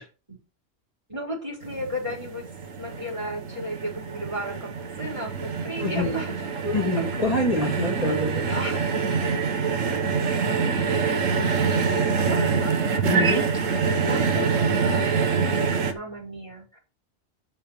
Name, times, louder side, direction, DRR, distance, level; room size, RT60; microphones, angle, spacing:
voice 1, 1.1-2.4 2.8-4.7 5.0-6.6 7.0-7.3 8.5-8.8 9.2-9.5 9.8-10.6 11.0-12.8 13.8-16.8, equal, 25° right, -2 dB, 5.1 m, -35 dB
sound 1, 1.6-15.9, right 5 dB, 85° right, 1.6 m, -25 dB
voice 2, 5.8-6.2 6.6-8.8 13.0-13.4, left 1 dB, 30° left, 0 dB, 2.5 m, -26 dB
7.9 x 6.9 x 6.0 m, 0.31 s
omnidirectional pair, 1.3 m